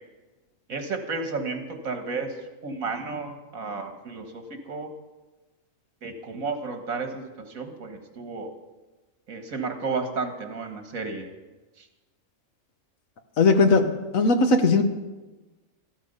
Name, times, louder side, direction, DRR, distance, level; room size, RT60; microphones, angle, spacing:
voice 1, 0.7-4.9 6.0-8.5 9.3-11.3 11.8-11.9, right 4 dB, 80° right, 5 dB, 2.1 m, -32 dB
voice 2, 13.4-14.8, left 3 dB, 75° left, 7 dB, 1.6 m, -19 dB
14.0 x 13.0 x 5.5 m, 1.2 s
omnidirectional pair, 1.4 m